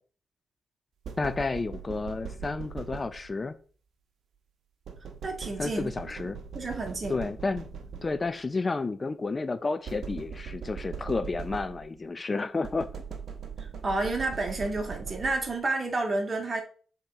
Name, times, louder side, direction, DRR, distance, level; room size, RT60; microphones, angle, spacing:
sound 1, 1.0-3.5 4.9-8.4 9.9-12.1 12.6-15.7, right 6 dB, 70° right, 1.0 m, -40 dB
voice 1, 1.2-3.6 5.6-6.4 7.1-7.6 8.0-12.9, left 3 dB, 35° left, 13 dB, 0.5 m, -31 dB
voice 2, 5.2-5.9 6.5-7.2 13.6-16.6, right 2 dB, 40° right, 2 dB, 2.0 m, -30 dB
6.9 x 3.7 x 4.2 m, 0.42 s
cardioid pair, 65°, 0 cm